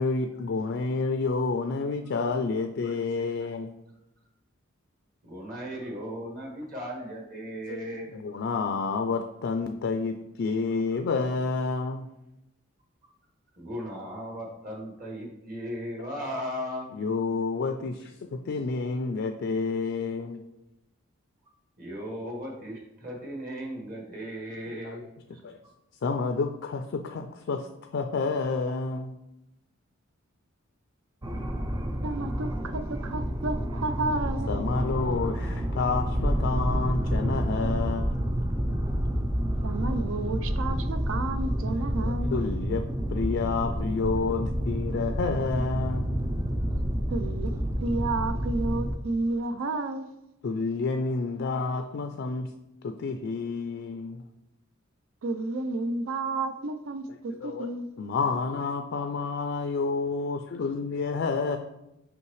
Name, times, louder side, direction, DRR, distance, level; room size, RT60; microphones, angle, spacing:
voice 1, 0.0-3.7 7.7-7.8 8.1-12.1 16.9-20.4 24.7-25.0 25.4-25.6 26.0-27.7 27.9-29.2 34.5-38.0 41.9-46.1 50.4-52.5 52.8-54.2 57.4-57.7 58.0-61.6, left 4 dB, 60° left, 7 dB, 0.4 m, -29 dB
voice 2, 5.2-8.1 13.6-16.9 21.8-25.0 25.3-25.4, equal, 45° right, -2 dB, 1.7 m, -36 dB
sound 1, 31.2-49.0, equal, 20° right, 0.4 m, -29 dB
voice 3, 32.0-34.5 39.6-42.4 47.1-47.5 47.8-50.1 55.2-57.9, right 2 dB, 75° right, 10 dB, 0.5 m, -31 dB
5.6 x 5.3 x 3.1 m, 0.90 s
head